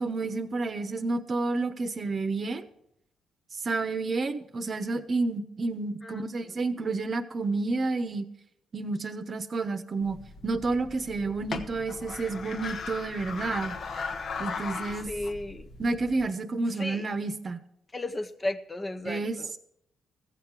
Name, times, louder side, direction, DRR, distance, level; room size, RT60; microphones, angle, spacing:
voice 1, 0.0-2.7 3.6-8.3 8.7-10.2 10.4-13.8 14.4-15.1 15.8-17.6 19.0-19.6, right 3 dB, 40° right, 10 dB, 0.9 m, -30 dB
sound 1, 10.0-16.3, left 4 dB, 55° left, 1.0 m, -38 dB
voice 2, 15.1-15.7 16.8-17.0 17.9-19.5, left 2 dB, 20° left, 8 dB, 0.7 m, -34 dB
14.5 x 7.3 x 6.1 m, 0.76 s
cardioid pair, 90°, 0 cm